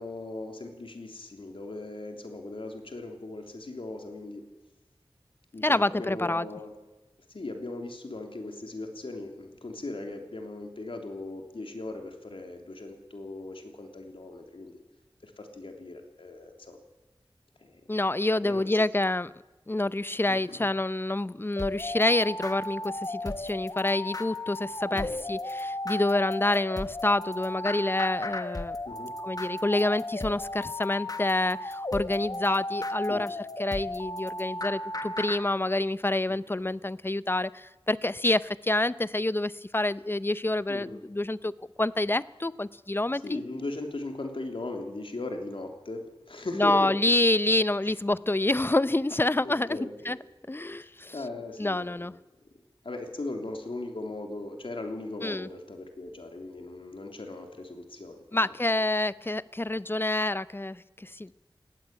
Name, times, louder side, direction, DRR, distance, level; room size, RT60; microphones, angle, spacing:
voice 1, 0.0-4.4 5.5-6.7 7.3-14.8 15.2-16.8 17.6-17.8 18.4-18.7 20.3-20.7 24.9-25.2 28.8-29.1 33.1-33.2 36.3-36.7 40.7-41.0 43.2-46.9 47.8-47.9 49.4-50.2 51.1-52.2 52.8-58.4, left 2 dB, 70° left, 4 dB, 3.2 m, -38 dB
voice 2, 5.6-6.5 17.9-19.3 19.7-28.8 29.2-43.4 46.6-49.8 50.0-50.2 50.5-51.1 51.6-52.1 55.2-55.5 58.3-61.3, left 2 dB, 25° left, 17 dB, 0.6 m, -27 dB
sound 1, 21.6-35.4, left 2 dB, 40° left, 1.6 m, -35 dB
20.0 x 15.5 x 9.1 m, 1.1 s
wide cardioid pair, 75°, 9 cm